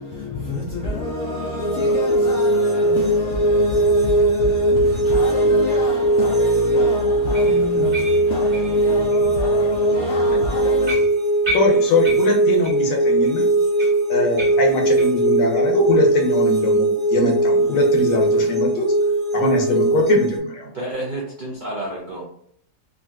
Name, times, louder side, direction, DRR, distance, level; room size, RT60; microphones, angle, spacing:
voice 1, 0.0-11.0, left 3 dB, 80° left, 0.6 m, -27 dB
sound 1, 1.6-20.4, right 2 dB, ahead, 0.5 m, -19 dB
sound 2, 7.3-9.3 9.7-9.9 10.3-10.4 10.8-12.9 13.2-13.3 13.8-15.2 15.5-15.7 16.1-16.2 16.7-16.8, equal, 30° right, 0.9 m, -33 dB
voice 2, 11.5-13.5 14.1-18.9 19.3-20.7, left 2 dB, 65° left, 1.0 m, -21 dB
voice 3, 20.6-22.2, right 1 dB, 80° right, 0.4 m, -30 dB
3.6 x 2.5 x 2.3 m
omnidirectional pair, 1.8 m